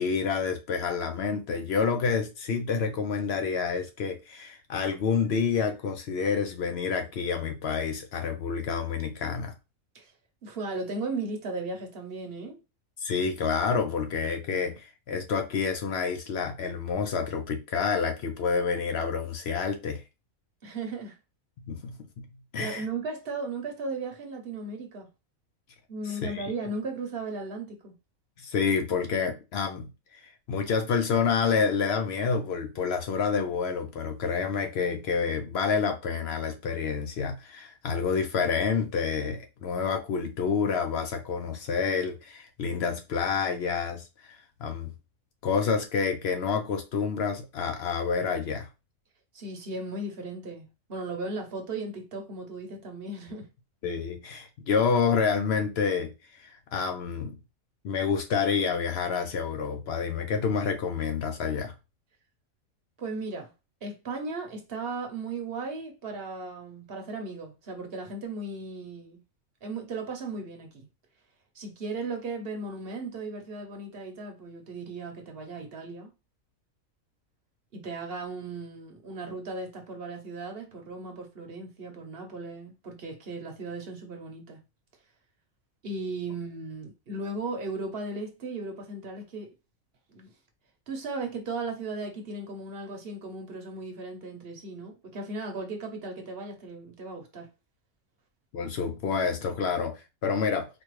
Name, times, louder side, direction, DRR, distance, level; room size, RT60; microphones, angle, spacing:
voice 1, 0.0-9.5 13.0-20.0 21.7-22.0 22.5-22.8 26.1-26.5 28.4-44.9 45.4-48.7 53.8-57.4 57.8-61.7 98.5-100.7, left 5 dB, 65° left, 0.7 m, -28 dB
voice 2, 10.4-12.6 20.6-21.2 22.6-25.1 25.9-27.9 49.3-53.5 63.0-63.5 63.8-69.2 69.6-70.9 71.5-76.1 77.7-84.6 85.8-89.5 90.1-90.3 90.9-97.5, right 3 dB, 50° right, 0.9 m, -36 dB
4.3 x 2.3 x 3.0 m
omnidirectional pair, 1.4 m